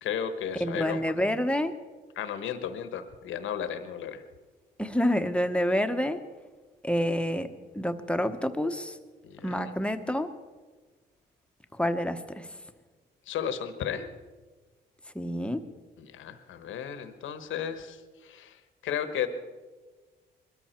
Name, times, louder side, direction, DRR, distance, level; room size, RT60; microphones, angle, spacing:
voice 1, 0.0-1.2 2.2-4.2 9.2-9.7 13.3-14.1 16.0-19.3, left 8 dB, 80° left, 10 dB, 1.3 m, -34 dB
voice 2, 0.6-1.8 4.8-6.2 6.8-9.0 9.4-10.3 11.7-12.5 15.1-15.6, equal, 5° left, 8 dB, 1.1 m, -28 dB
21.5 x 13.5 x 4.5 m, 1.3 s
cardioid pair, 90°, 20 cm